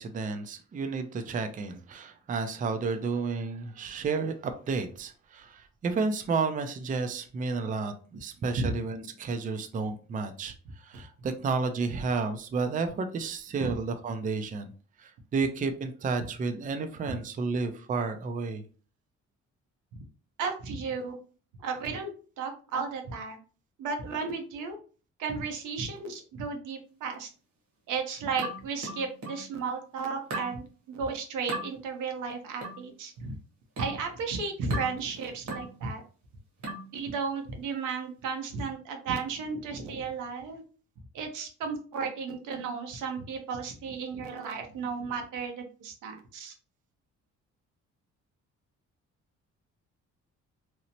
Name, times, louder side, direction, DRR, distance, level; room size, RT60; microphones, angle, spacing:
voice 1, 0.0-10.5 10.8-14.7 15.0-18.6, right 4 dB, 30° right, 8 dB, 0.4 m, -31 dB
voice 2, 20.4-21.2 21.6-22.1 22.4-23.4 23.8-24.8 25.2-27.3 27.9-33.4 33.8-36.0 36.9-40.6 41.1-46.5, right 5 dB, 85° right, 4 dB, 0.7 m, -34 dB
sound 1, 28.4-29.5 30.3-30.6 31.5-31.7 32.6-32.9 33.8-34.0 34.7-35.0 35.5-35.7 36.6-36.9, right 2 dB, 65° right, 1.1 m, -37 dB
2.9 x 2.0 x 2.7 m, 0.39 s
cardioid pair, 90°, 30 cm